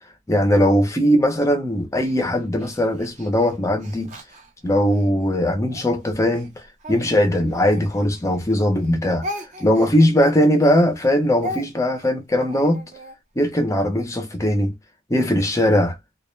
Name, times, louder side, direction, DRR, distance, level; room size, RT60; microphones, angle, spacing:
voice 1, 0.3-4.2 4.6-9.3 9.6-12.8 13.4-14.7 15.1-16.0, equal, 15° left, 0.4 m, -19 dB
Speech, 2.0-5.1 5.7-8.5 8.7-13.2, left 1 dB, 35° right, 0.5 m, -37 dB
2.2 x 2.1 x 3.0 m
head